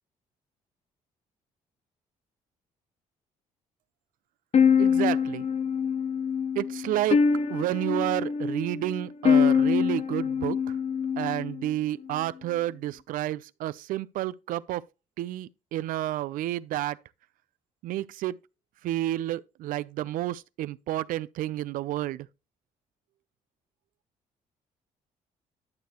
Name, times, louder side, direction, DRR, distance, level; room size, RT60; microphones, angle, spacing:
sound 1, 4.5-11.7, left 6 dB, 50° left, 0.9 m, -24 dB
voice 1, 4.8-5.4 6.6-7.2 7.5-10.8 11.2-14.8 15.2-17.0 17.8-18.4 18.8-22.3, right 14 dB, 75° right, 0.5 m, -30 dB
11.5 x 6.6 x 3.0 m
supercardioid pair, 75°, 14 cm